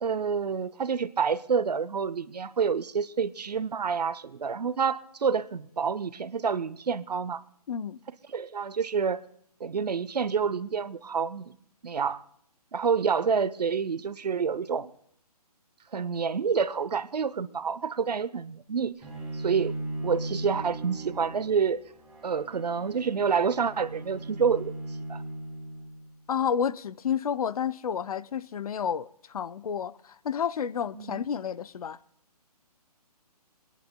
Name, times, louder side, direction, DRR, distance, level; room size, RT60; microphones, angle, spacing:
voice 1, 0.0-7.4 8.3-9.2 9.6-11.5 11.8-12.2 12.7-14.9 15.9-18.9 19.3-19.7 20.0-21.8 22.2-24.7 25.1-25.2 31.0-31.2, right 6 dB, 90° right, 0.7 m, -28 dB
voice 2, 7.7-8.0 26.3-32.0, left 8 dB, 65° left, 0.5 m, -30 dB
Bowed string instrument, 19.0-26.1, right 2 dB, ahead, 3.8 m, -38 dB
30.0 x 10.5 x 2.2 m
hypercardioid pair, 155°, 20 cm